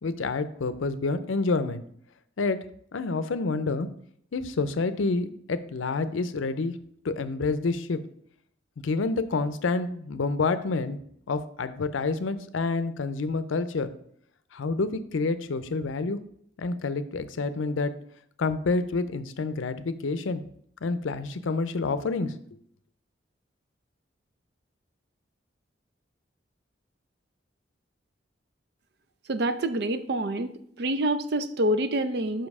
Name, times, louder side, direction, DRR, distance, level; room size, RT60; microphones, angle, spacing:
voice 1, 0.0-1.8 2.4-2.6 2.9-3.9 4.3-6.7 7.0-8.0 8.8-11.0 11.3-13.9 14.5-16.2 16.6-17.9 18.4-20.4 20.8-22.3, left 3 dB, 85° left, 12 dB, 0.5 m, -28 dB
voice 2, 29.3-30.5 30.8-32.5, right 1 dB, 55° right, 11 dB, 0.5 m, -26 dB
5.7 x 5.3 x 4.8 m, 0.68 s
head